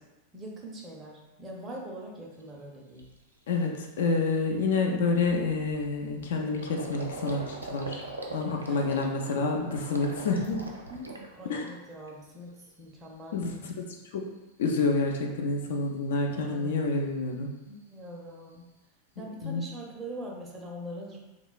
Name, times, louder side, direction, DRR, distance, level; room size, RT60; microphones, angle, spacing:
voice 1, 0.3-3.1 8.7-8.9 10.9-13.7 16.3-16.8 17.7-18.7 19.2-21.2, equal, 20° right, -2 dB, 0.5 m, -43 dB
Gurgling, 2.4-2.5 3.0-3.2 3.6-3.8 4.0-12.1 12.4-13.1, right 2 dB, 80° right, 0.3 m, -42 dB
voice 2, 3.5-8.0 8.3-10.6 11.5-11.6 13.3-14.2 14.6-17.5 19.4-19.6, left 3 dB, 60° left, 2 dB, 0.3 m, -28 dB
2.9 x 2.2 x 2.3 m, 1.0 s
figure-of-eight pair, 90°, 0 cm